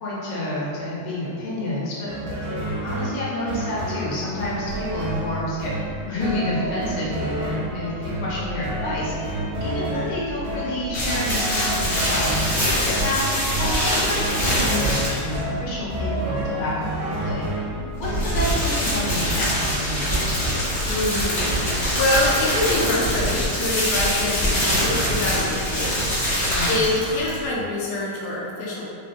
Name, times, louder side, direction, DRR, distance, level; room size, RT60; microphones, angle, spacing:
voice 1, 0.0-2.1 2.8-5.7 6.1-12.6 13.0-13.2 13.6-17.5 18.0-20.2 26.4-26.8, left 1 dB, 65° left, -7 dB, 1.3 m, -29 dB
sound 1, 2.1-18.8, right 1 dB, 75° right, 1.4 m, -30 dB
sound 2, 4.6-23.1, left 1 dB, 60° right, 1.0 m, -38 dB
sound 3, 10.9-15.4 17.9-27.5, equal, 50° left, 0.8 m, -24 dB
voice 2, 20.9-28.9, left 2 dB, 85° left, -5 dB, 0.8 m, -26 dB
3.4 x 2.1 x 2.6 m, 2.5 s
omnidirectional pair, 2.3 m